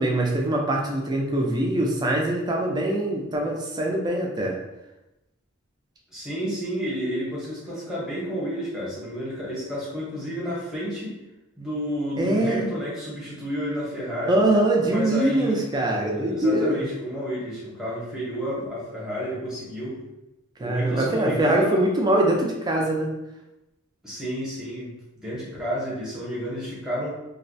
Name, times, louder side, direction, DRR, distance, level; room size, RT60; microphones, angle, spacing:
voice 1, 0.0-4.5 12.2-12.6 14.3-16.8 20.6-23.1, right 1 dB, 20° right, 0 dB, 0.3 m, -23 dB
voice 2, 6.1-11.2 11.6-14.3 14.9-15.6 16.1-20.0 20.6-21.8 24.0-27.1, equal, 5° right, -8 dB, 0.7 m, -31 dB
2.3 x 2.0 x 2.6 m, 0.95 s
head